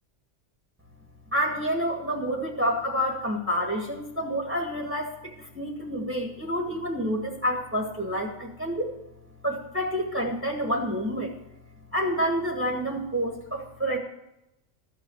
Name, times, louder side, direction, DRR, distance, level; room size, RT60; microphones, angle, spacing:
voice 1, 1.3-8.9 9.4-11.3 11.9-14.0, equal, 10° right, 0 dB, 1.5 m, -28 dB
14.0 x 5.9 x 7.7 m, 0.89 s
omnidirectional pair, 1.3 m